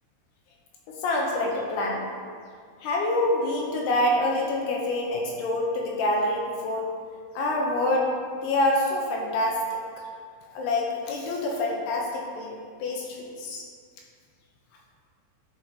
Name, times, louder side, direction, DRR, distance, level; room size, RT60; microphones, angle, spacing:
voice 1, 0.9-2.0 2.8-6.9 7.4-9.8 10.5-13.6, left 1 dB, 75° left, -1 dB, 2.6 m, -26 dB
10.5 x 4.8 x 4.0 m, 2.1 s
omnidirectional pair, 5.4 m